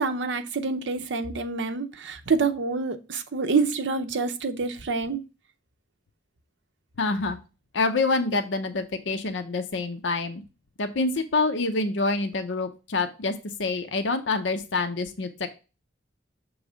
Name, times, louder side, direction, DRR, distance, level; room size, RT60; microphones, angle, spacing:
voice 1, 0.0-5.2, right 4 dB, 70° right, 0.7 m, -27 dB
voice 2, 7.0-7.4 7.7-10.4 10.8-13.3 13.6-15.5, left 3 dB, 75° left, 0.7 m, -26 dB
6.2 x 3.2 x 4.9 m
head